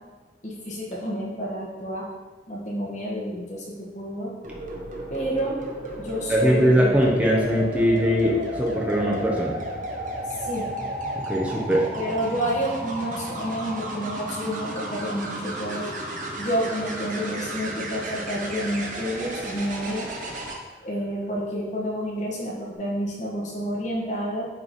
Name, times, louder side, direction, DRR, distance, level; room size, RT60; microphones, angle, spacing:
voice 1, 0.4-2.1 2.5-4.3 5.1-5.6 6.0-7.0 10.4-10.7 12.0-15.9 16.4-20.1 20.8-24.5, equal, 40° left, -3 dB, 1.4 m, -29 dB
sound 1, 4.4-20.6 22.5-22.7, right 1 dB, 45° right, 0.9 m, -33 dB
voice 2, 6.3-9.6 11.3-11.9, equal, 5° right, -3 dB, 0.8 m, -21 dB
8.8 x 3.2 x 4.2 m, 1.3 s
head